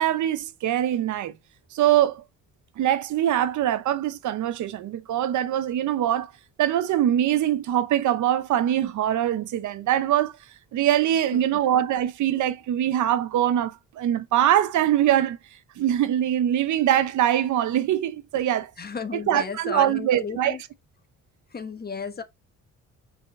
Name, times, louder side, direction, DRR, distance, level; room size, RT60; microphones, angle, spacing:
voice 1, 0.0-1.3 1.7-2.2 2.8-6.3 6.6-10.3 10.7-15.4 15.8-18.7 19.1-20.6, right 11 dB, 75° right, 0.9 m, -23 dB
voice 2, 18.8-20.6 21.5-22.2, left 5 dB, 30° left, 1.4 m, -33 dB
5.2 x 4.9 x 4.4 m
cardioid pair, 90°, 30 cm